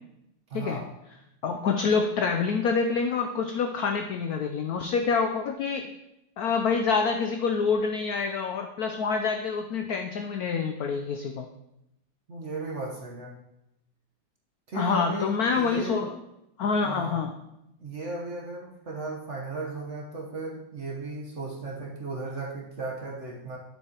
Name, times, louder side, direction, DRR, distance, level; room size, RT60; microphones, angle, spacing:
voice 1, 0.5-0.9 12.3-13.3 14.7-16.0 16.8-17.2 17.8-23.6, right 3 dB, 45° right, -1 dB, 1.2 m, -36 dB
voice 2, 1.4-5.9 6.4-11.5 14.8-16.2 16.6-17.3, left 5 dB, 75° left, 5 dB, 0.8 m, -27 dB
9.6 x 7.7 x 2.9 m, 0.85 s
omnidirectional pair, 2.2 m